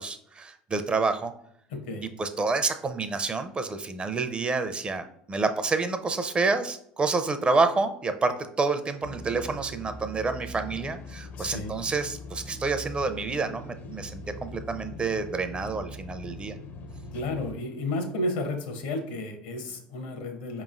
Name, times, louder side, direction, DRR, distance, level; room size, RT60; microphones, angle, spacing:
voice 1, 0.0-1.3 2.2-16.6, right 3 dB, 25° right, 9 dB, 0.5 m, -28 dB
voice 2, 1.7-2.1 11.4-11.7 17.1-20.6, left 2 dB, 75° left, 6 dB, 0.8 m, -32 dB
sound 1, 9.0-17.5, left 1 dB, 45° left, 0.5 m, -41 dB
4.9 x 3.0 x 2.5 m, 0.68 s
hypercardioid pair, 75°, 4 cm